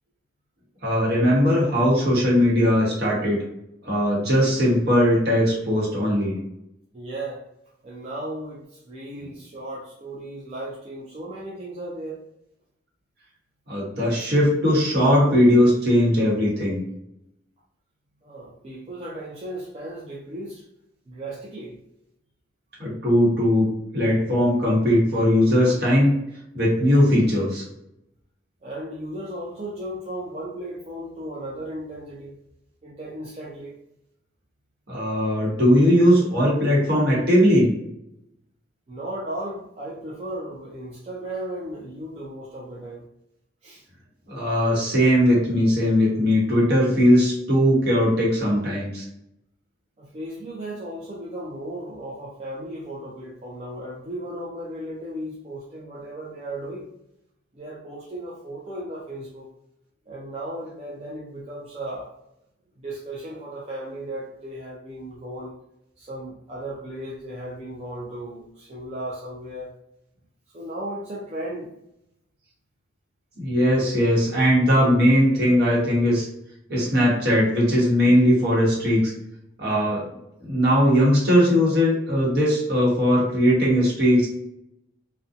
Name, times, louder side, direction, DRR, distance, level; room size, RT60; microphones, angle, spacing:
voice 1, 0.8-3.4 3.8-6.4 13.7-16.8 22.8-23.7 23.9-26.2 26.5-27.6 34.9-37.7 44.3-49.0 73.4-76.3 76.7-79.1 79.6-80.0 80.4-84.3, equal, 60° right, -5 dB, 1.0 m, -19 dB
voice 2, 6.9-7.4 7.8-12.3 14.2-14.3 18.2-20.6 21.1-21.8 28.6-32.4 32.8-33.8 38.9-43.1 43.6-43.8 50.0-56.9 57.5-59.5 60.1-62.1 62.8-65.6 66.0-69.7 70.5-71.7, right 1 dB, 35° right, -6 dB, 0.4 m, -35 dB
2.6 x 2.2 x 2.4 m, 0.81 s
head